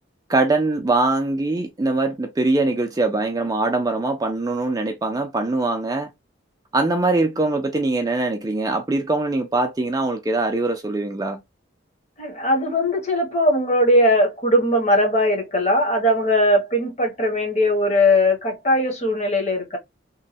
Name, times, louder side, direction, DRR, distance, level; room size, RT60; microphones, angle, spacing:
voice 1, 0.3-6.1 6.7-11.4, right 2 dB, 20° right, 0.4 m, -22 dB
voice 2, 12.2-19.8, left 1 dB, 35° left, 0.9 m, -19 dB
3.0 x 2.1 x 2.6 m
head